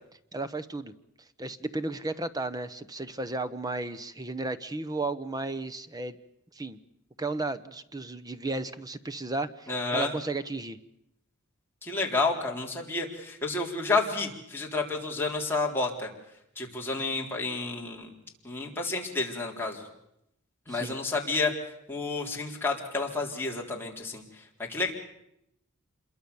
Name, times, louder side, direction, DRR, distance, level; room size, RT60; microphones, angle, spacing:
voice 1, 0.3-0.9 1.4-6.2 6.5-6.8 7.2-10.8 20.7-21.0, right 2 dB, 15° right, 13 dB, 0.9 m, -34 dB
voice 2, 9.7-10.1 11.8-16.1 16.6-18.1 18.4-19.8 20.7-21.5 21.9-24.2 24.7-24.9, left 3 dB, 10° left, -1 dB, 3.9 m, -30 dB
27.0 x 22.5 x 7.1 m, 0.80 s
head